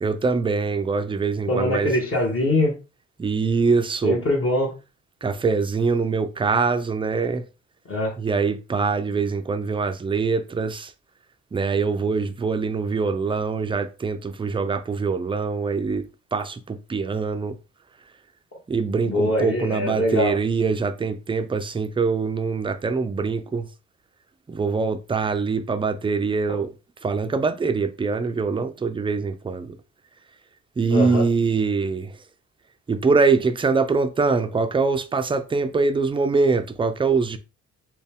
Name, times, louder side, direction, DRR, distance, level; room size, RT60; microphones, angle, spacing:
voice 1, 0.0-1.9 3.2-4.2 5.2-7.4 8.2-10.9 11.5-17.6 18.7-23.7 24.5-26.7 27.0-29.8 30.8-32.2 32.9-37.4, right 4 dB, 15° right, 0.4 m, -23 dB
voice 2, 1.5-2.7 4.0-4.7 7.9-8.1 19.0-20.3 26.5-26.6 30.9-31.2, left 1 dB, 45° left, 1.5 m, -22 dB
4.3 x 2.2 x 3.5 m
cardioid pair, 90°, 30 cm